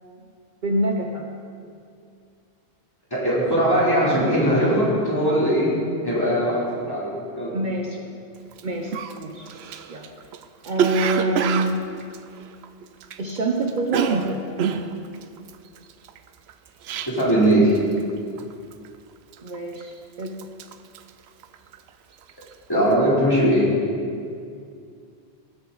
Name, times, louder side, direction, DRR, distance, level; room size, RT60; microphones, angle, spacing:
voice 1, 0.6-1.3 7.5-8.0 8.6-10.1 10.6-11.8 13.2-14.4 19.4-20.4, right 2 dB, 50° right, 1 dB, 0.9 m, -26 dB
voice 2, 3.1-5.7 6.0-7.5 17.1-17.7 22.7-23.7, right 1 dB, 20° left, -7 dB, 3.2 m, -20 dB
Cough, 8.5-8.6 8.9-13.4 13.6-17.5 17.7-18.1 18.4-18.9 19.3-19.9 20.2-21.9 22.2-22.5, right 7 dB, 80° right, 0.9 m, -28 dB
18.5 x 7.9 x 3.9 m, 2.3 s
omnidirectional pair, 1.1 m